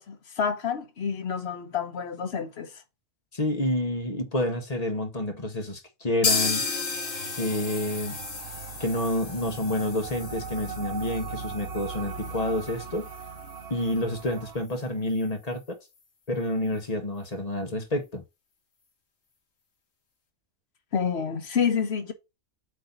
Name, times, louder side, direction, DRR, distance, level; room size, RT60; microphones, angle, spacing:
voice 1, 0.0-2.8 20.9-22.1, left 7 dB, 55° left, 1.1 m, -28 dB
voice 2, 3.3-6.9 7.4-8.2 8.8-13.1 13.7-15.6 16.3-18.2, left 1 dB, 30° left, 1.1 m, -29 dB
sound 1, 6.2-14.0 14.3-14.4 14.7-14.8 15.2-15.3, left 4 dB, 70° left, 1.8 m, -33 dB
sound 2, 6.3-14.6, right 5 dB, 55° right, 0.9 m, -40 dB
8.1 x 2.8 x 5.3 m
omnidirectional pair, 1.4 m